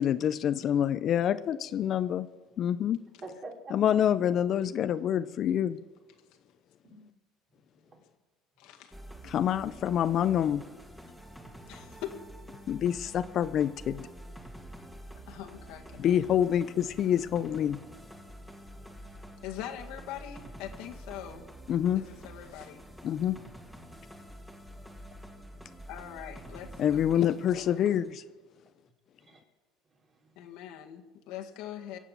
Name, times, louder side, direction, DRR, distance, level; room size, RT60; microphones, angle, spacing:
voice 1, 0.0-2.3 2.6-3.0 3.7-5.8 9.2-10.6 12.7-14.1 16.0-17.8 21.7-22.1 23.0-23.4 26.8-28.3, left 10 dB, 50° left, 12 dB, 0.5 m, -27 dB
voice 2, 3.2-3.7 6.8-7.0 7.5-8.0 29.2-29.4 29.9-30.6, right 2 dB, 40° right, 1 dB, 3.8 m, -47 dB
voice 3, 8.6-8.9 11.7-12.2 15.3-16.1 19.4-21.5 22.0-22.8 25.9-27.0 27.5-27.6 30.4-32.0, left 11 dB, 75° left, 3 dB, 1.8 m, -42 dB
sound 1, 8.9-28.1, right 1 dB, 5° right, 2.1 m, -48 dB
23.5 x 8.2 x 7.1 m, 1.2 s
supercardioid pair, 105°, 0 cm